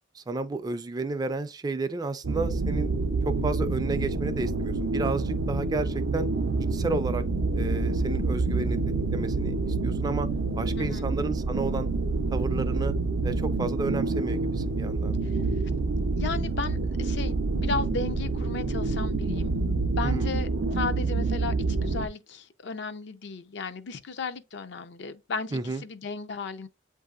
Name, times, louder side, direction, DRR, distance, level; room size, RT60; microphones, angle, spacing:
voice 1, 0.1-2.9 3.2-6.3 6.7-7.2 7.6-8.8 9.1-10.3 10.6-11.9 12.3-12.9 13.2-15.2 20.0-20.4 25.5-25.8, right 3 dB, 20° right, 0.3 m, -32 dB
sound 1, 2.2-22.1, right 3 dB, 85° right, 0.5 m, -27 dB
voice 2, 10.8-11.1 16.2-26.7, left 4 dB, 65° left, 0.5 m, -35 dB
7.9 x 2.7 x 2.3 m
head